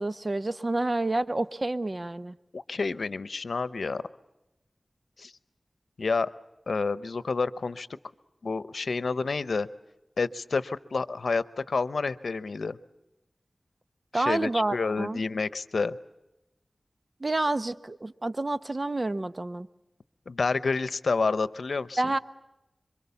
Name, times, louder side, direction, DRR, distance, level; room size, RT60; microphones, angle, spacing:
voice 1, 0.0-2.3 14.1-15.2 17.2-19.7 22.0-22.2, right 2 dB, 40° right, 12 dB, 1.0 m, -29 dB
voice 2, 2.5-4.0 5.2-5.3 6.0-6.3 6.7-7.9 8.4-9.7 10.2-12.8 14.1-16.0 20.3-22.0, left 4 dB, 90° left, 15 dB, 0.8 m, -29 dB
26.5 x 24.0 x 7.0 m, 0.94 s
wide cardioid pair, 60°, 0 cm